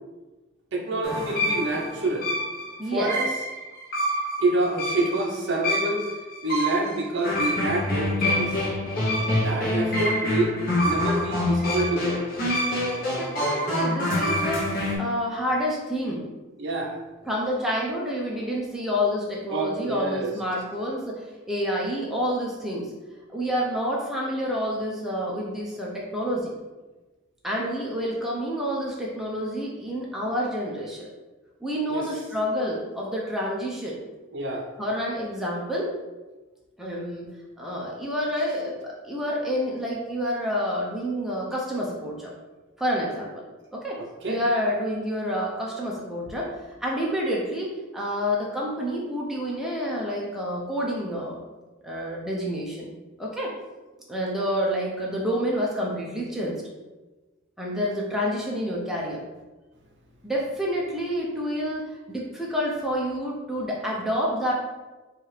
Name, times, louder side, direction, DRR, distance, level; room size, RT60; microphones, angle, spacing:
voice 1, 0.7-2.3 2.9-3.3 4.4-6.1 6.4-8.6 9.4-10.5 10.8-12.3 16.6-17.0 19.5-20.3 31.9-32.1 34.3-34.7 44.0-44.4, right 2 dB, 55° right, 0 dB, 0.6 m, -27 dB
sound 1, 1.0-15.0, left 1 dB, 40° left, 0.8 m, -26 dB
voice 2, 2.8-3.2 13.0-16.2 17.2-22.9 23.3-26.5 27.4-31.1 31.6-34.0 34.8-35.9 36.8-37.3 37.6-42.3 42.8-43.4 43.7-44.0 44.3-46.5 46.8-51.4 51.8-52.9 53.2-53.5 54.1-56.6 57.6-59.2 60.2-64.5, equal, ahead, -4 dB, 0.5 m, -28 dB
4.6 x 2.4 x 3.1 m, 1.2 s
head